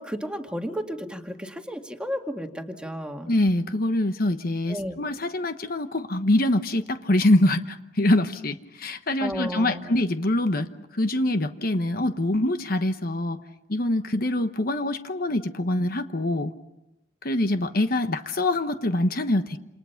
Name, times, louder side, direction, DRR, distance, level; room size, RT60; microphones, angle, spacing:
voice 1, 0.0-3.3 4.7-5.0 9.2-10.0, equal, 5° right, 4 dB, 2.1 m, -33 dB
voice 2, 3.3-10.7 10.9-13.4 13.7-16.5 17.2-19.6, left 1 dB, 50° left, 8 dB, 1.1 m, -24 dB
28.5 x 28.0 x 5.8 m, 0.89 s
head